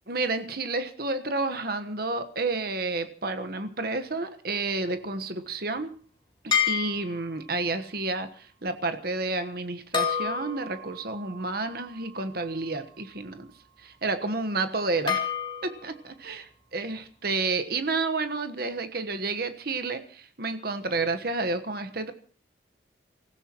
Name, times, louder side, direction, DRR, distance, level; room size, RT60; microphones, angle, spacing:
voice 1, 0.1-5.9 6.7-13.5 13.8-15.2 15.6-16.4 16.7-22.1, right 3 dB, 55° right, 8 dB, 1.2 m, -30 dB
sound 1, 6.5-7.5 9.9-13.0 15.1-16.0, left 7 dB, 25° left, 2.9 m, -31 dB
30.0 x 15.5 x 3.0 m, 0.40 s
head